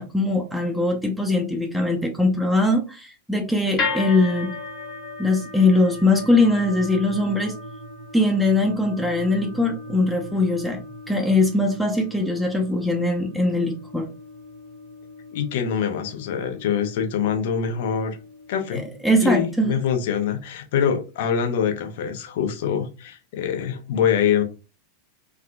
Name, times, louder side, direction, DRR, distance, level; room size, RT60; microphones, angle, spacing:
voice 1, 0.0-4.5 5.2-7.5 8.1-10.8 11.1-14.1 18.7-19.7, left 2 dB, ahead, 0 dB, 0.6 m, -21 dB
sound 1, 3.8-20.0, left 3 dB, 40° left, 1.1 m, -37 dB
voice 2, 15.3-18.2 18.5-18.8 19.2-24.4, left 8 dB, 60° left, 5 dB, 0.7 m, -24 dB
3.5 x 2.3 x 2.3 m, 0.32 s
figure-of-eight pair, 90°, 0 cm